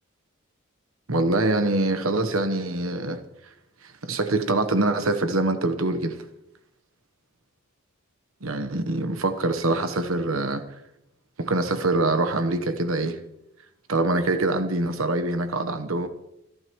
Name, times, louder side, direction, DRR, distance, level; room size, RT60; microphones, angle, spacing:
voice 1, 1.1-3.2 3.4-3.5 3.8-6.2 8.4-10.6 11.4-13.2 13.9-16.1, right 2 dB, 85° right, 7 dB, 1.2 m, -24 dB
26.0 x 12.0 x 3.1 m, 0.85 s
head